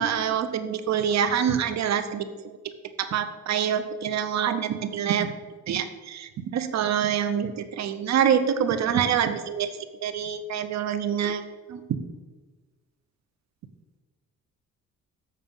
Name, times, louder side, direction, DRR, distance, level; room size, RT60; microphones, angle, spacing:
voice 1, 0.0-2.3 3.1-5.3 5.7-9.7 10.0-11.8, right 8 dB, 60° right, 11 dB, 0.8 m, -26 dB
7.4 x 6.7 x 5.4 m, 1.3 s
cardioid pair, 90°, 30 cm